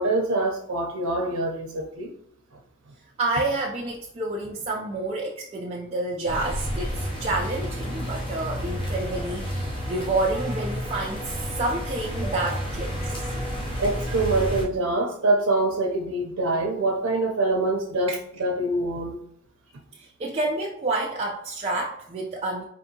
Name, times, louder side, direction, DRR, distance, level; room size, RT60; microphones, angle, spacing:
voice 1, 0.0-2.1 13.8-19.1, right 2 dB, 85° right, 0 dB, 0.5 m, -25 dB
voice 2, 3.2-13.3 19.9-22.6, right 2 dB, 30° right, -3 dB, 0.4 m, -29 dB
sound 1, 6.3-14.7, equal, 25° left, 0.6 m, -31 dB
4.2 x 2.6 x 2.7 m, 0.74 s
head